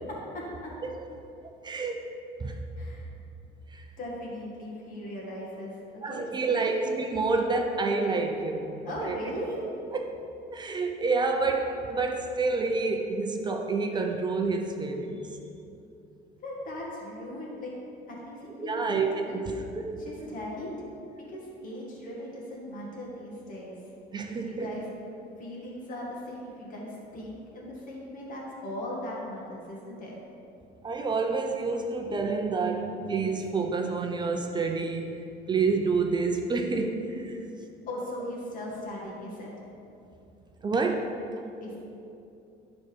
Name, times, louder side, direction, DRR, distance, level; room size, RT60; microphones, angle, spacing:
voice 1, 0.3-0.7 2.8-3.0 4.0-6.9 7.3-7.4 8.8-9.6 16.4-17.7 18.1-19.4 20.0-20.7 21.3-23.7 24.3-24.8 25.4-30.2 37.9-39.5 41.6-41.8, left 1 dB, 45° left, -4 dB, 2.0 m, -38 dB
voice 2, 1.6-2.0 2.4-2.6 3.7-3.8 6.0-8.7 9.1-9.2 9.9-10.1 10.5-15.2 18.6-19.9 20.2-20.3 24.1-24.7 30.8-35.2 35.5-37.4 40.6-41.1, right 4 dB, 25° right, 3 dB, 0.6 m, -28 dB
11.0 x 4.1 x 5.3 m, 2.7 s
cardioid pair, 145°, 19 cm